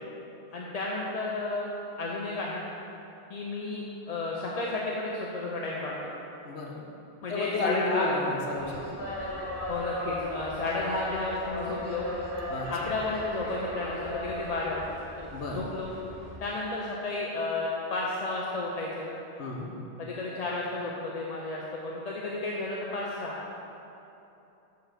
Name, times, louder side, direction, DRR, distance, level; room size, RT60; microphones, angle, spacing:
voice 1, 0.5-1.7 2.0-2.6 3.3-6.1 7.2-8.1 9.7-12.0 12.7-14.8 15.2-15.9 16.4-19.1 20.0-23.4, left 2 dB, 40° left, -4 dB, 0.7 m, -32 dB
voice 2, 6.4-6.8 7.3-9.0 12.5-12.9 15.3-15.6 19.4-19.7, left 2 dB, 75° left, -2 dB, 1.4 m, -32 dB
sound 1, 8.5-16.4, left 1 dB, 20° left, 2.1 m, -37 dB
8.2 x 4.6 x 6.6 m, 2.9 s
omnidirectional pair, 1.1 m